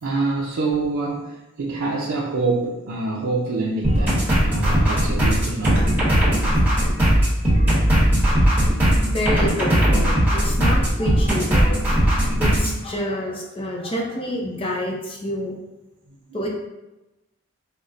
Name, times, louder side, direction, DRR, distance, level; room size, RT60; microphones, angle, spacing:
voice 1, 0.0-5.9 16.3-16.4, right 3 dB, 90° right, -3 dB, 0.5 m, -26 dB
sound 1, 3.8-12.7, equal, 10° right, 1.1 m, -18 dB
voice 2, 9.1-11.8 12.4-15.5 16.3-16.5, left 1 dB, 25° left, -1 dB, 0.6 m, -28 dB
5.4 x 2.1 x 2.5 m, 0.98 s
head